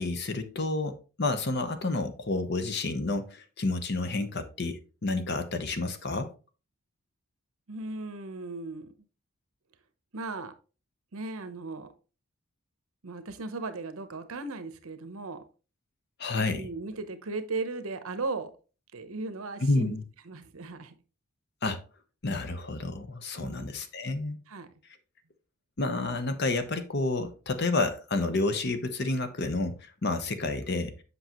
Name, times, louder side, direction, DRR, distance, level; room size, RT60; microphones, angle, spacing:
voice 1, 0.0-6.3 16.2-16.7 19.6-20.0 21.6-21.8 22.2-24.4 25.8-30.9, left 2 dB, 50° left, 0.9 m, -30 dB
voice 2, 7.7-8.9 10.1-10.5 11.1-11.9 13.0-15.4 16.5-18.5 18.9-19.9 20.2-20.9 23.3-23.8 24.5-24.7, right 3 dB, 70° right, 0.9 m, -37 dB
7.9 x 5.6 x 3.0 m
head